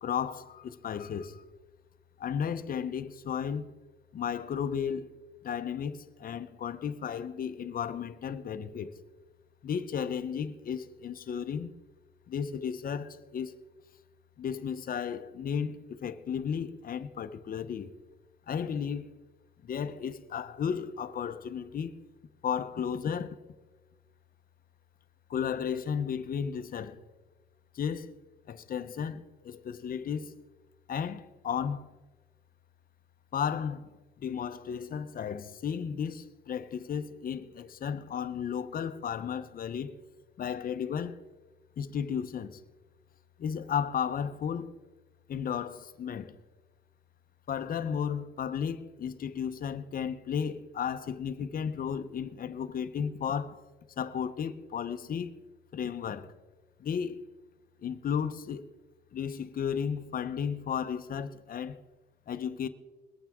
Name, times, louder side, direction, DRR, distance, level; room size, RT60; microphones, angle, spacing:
voice 1, 0.0-1.4 2.2-3.8 4.1-5.1 5.4-9.0 9.6-11.7 12.3-13.5 14.4-17.9 18.5-19.2 19.6-22.0 22.4-23.4 25.3-27.0 27.7-28.1 28.5-30.3 30.9-31.9 33.3-33.9 34.2-40.0 40.4-41.2 41.8-42.6 43.4-44.8 45.3-46.4 47.5-53.6 54.0-55.4 55.7-56.3 56.8-57.3 57.8-58.6 59.1-61.8 62.3-62.7, left 7 dB, 60° left, 0.9 m, -34 dB
22.0 x 8.9 x 3.7 m
cardioid pair, 90°, 17 cm